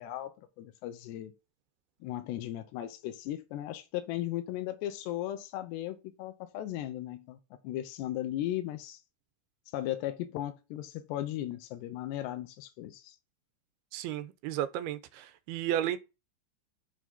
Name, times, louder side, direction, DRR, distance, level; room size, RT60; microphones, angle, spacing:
voice 1, 0.0-1.3 2.0-7.4 7.6-9.0 9.7-13.2, left 13 dB, 85° left, 3.1 m, -36 dB
voice 2, 13.9-16.0, right 12 dB, 80° right, 2.5 m, -33 dB
7.7 x 6.3 x 3.9 m
omnidirectional pair, 4.8 m